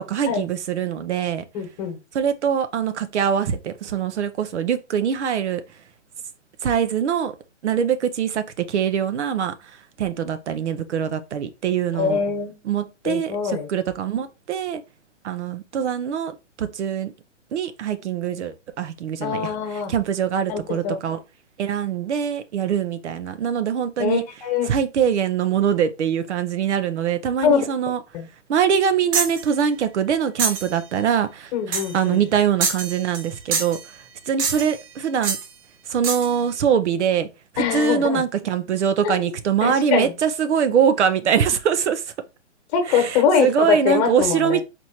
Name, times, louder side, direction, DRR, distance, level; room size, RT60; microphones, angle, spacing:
voice 1, 0.1-1.4 2.1-5.6 6.6-7.3 7.6-9.5 10.0-12.2 12.6-14.8 15.2-17.1 17.5-21.2 21.6-24.2 24.7-28.0 28.5-33.8 34.3-35.4 35.9-37.3 37.5-42.0 42.9-44.6, right 8 dB, 65° right, 0.7 m, -23 dB
voice 2, 1.5-2.0 11.9-12.6 13.0-13.7 19.2-19.9 20.5-21.0 24.0-24.7 27.4-27.6 28.1-28.3 31.5-32.2 37.6-38.2 39.0-39.3 39.6-40.1 42.7-44.6, left 6 dB, 35° left, 1.2 m, -23 dB
sound 1, 29.1-29.4 30.4-30.7 31.7-32.0 32.6-33.3 33.5-33.8 34.4-34.8 35.2-35.5 36.0-36.3, right 5 dB, 30° right, 0.7 m, -25 dB
4.3 x 3.1 x 2.9 m
hypercardioid pair, 140°, 36 cm